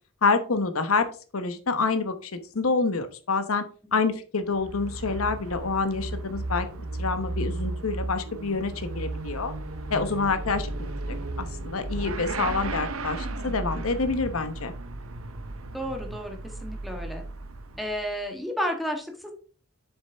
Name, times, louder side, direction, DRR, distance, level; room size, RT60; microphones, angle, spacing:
voice 1, 0.2-1.1 1.3-3.6 3.9-6.7 7.0-9.5 9.9-10.9 11.4-14.7, left 4 dB, 90° left, 10 dB, 1.0 m, -27 dB
Motorcycle / Accelerating revving vroom, 4.4-18.2, right 2 dB, 80° right, 0.9 m, -34 dB
voice 2, 15.7-17.2 17.7-19.3, equal, ahead, 2 dB, 1.5 m, -32 dB
7.2 x 6.5 x 3.5 m, 0.39 s
head